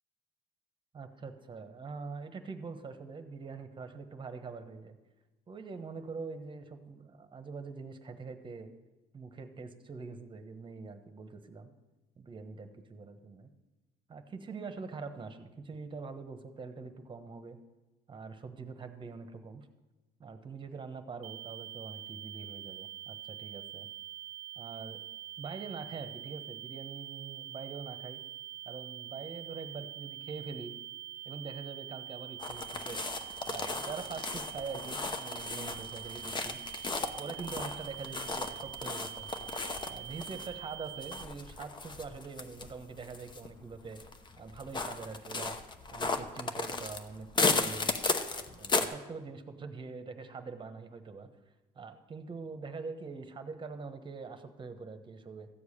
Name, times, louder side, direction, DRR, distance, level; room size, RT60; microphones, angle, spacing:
voice 1, 0.9-5.0 5.5-8.7 9.1-11.7 12.2-13.5 14.1-17.6 18.1-19.7 20.2-23.9 24.5-25.0 25.4-28.2 28.6-30.7 31.2-33.0 33.5-44.1 44.4-45.6 45.9-48.0 48.5-51.3 51.7-55.5, right 4 dB, 30° right, 8 dB, 1.1 m, -44 dB
sound 1, 21.2-41.2, right 13 dB, 70° right, 0.7 m, -45 dB
sound 2, 32.4-48.9, left 3 dB, 25° left, 0.8 m, -35 dB
14.0 x 4.8 x 8.6 m, 1.1 s
cardioid pair, 110°, 17 cm